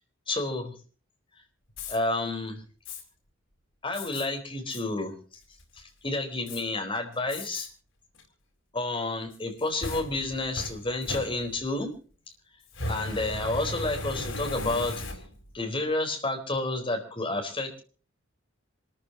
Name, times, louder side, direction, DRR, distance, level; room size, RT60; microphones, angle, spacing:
voice 1, 0.3-0.7 1.9-2.6 3.8-5.2 6.0-7.7 8.7-11.9 12.9-15.0 15.5-17.8, left 2 dB, 25° left, 3 dB, 4.2 m, -30 dB
Fire, 1.7-2.0 2.9-3.0 3.9-4.3 4.7-4.8 5.3-5.8 6.5-6.6 7.3-7.7 8.2-8.3 9.3-11.8 12.7-15.5, left 1 dB, 90° left, 4.7 m, -36 dB
27.0 x 14.0 x 2.9 m, 0.39 s
head